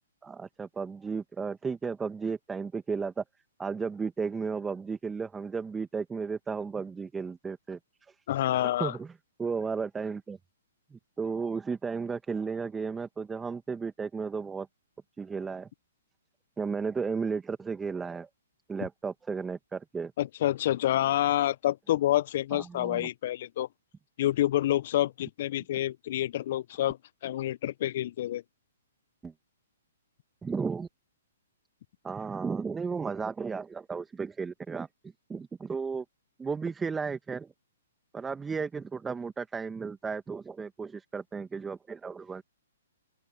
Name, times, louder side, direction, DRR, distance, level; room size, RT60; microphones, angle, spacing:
voice 1, 0.2-3.2 3.6-7.8 8.1-8.2 8.6-9.1 9.4-10.4 10.9-14.7 15.2-15.7 16.6-18.3 18.7-20.1 22.5-23.1 29.2-29.3 30.4-30.9 32.0-34.9 35.3-36.0 36.4-37.5 38.1-42.4, right 5 dB, 10° right, 2.1 m, -34 dB
voice 2, 8.3-9.0 20.2-23.7 24.2-27.0 27.2-28.4, left 13 dB, 50° left, 1.1 m, -28 dB
open air
figure-of-eight pair, 125°, 0 cm